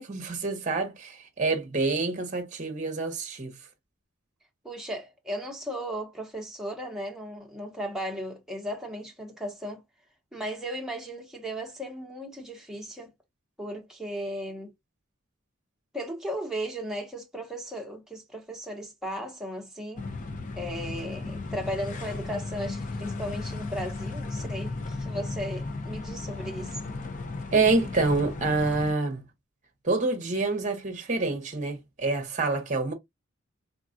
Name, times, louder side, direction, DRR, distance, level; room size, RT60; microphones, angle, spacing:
voice 1, 0.0-3.6 27.5-29.2 29.8-32.9, right 3 dB, 35° right, 0.8 m, -27 dB
voice 2, 4.6-9.8 10.3-13.1 13.6-14.7 15.9-20.1 20.6-26.8, equal, ahead, 0.8 m, -36 dB
sound 1, 20.0-28.9, left 3 dB, 35° left, 0.4 m, -35 dB
3.5 x 2.3 x 2.4 m
head